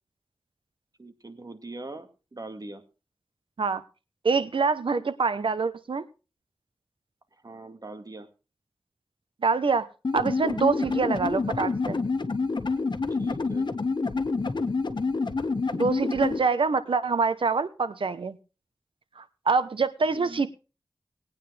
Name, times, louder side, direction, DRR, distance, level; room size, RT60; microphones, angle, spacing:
voice 1, 1.0-2.8 7.4-8.3 10.8-11.0 13.2-13.7 20.1-20.4, right 2 dB, 45° right, 7 dB, 2.0 m, -41 dB
voice 2, 4.2-6.1 9.4-9.9 10.1-12.0 15.7-18.4 19.2-20.5, right 4 dB, 85° right, 12 dB, 1.0 m, -25 dB
sound 1, 10.0-16.4, left 4 dB, 60° left, 1.5 m, -27 dB
20.0 x 9.3 x 3.4 m, 0.32 s
wide cardioid pair, 55°, 9 cm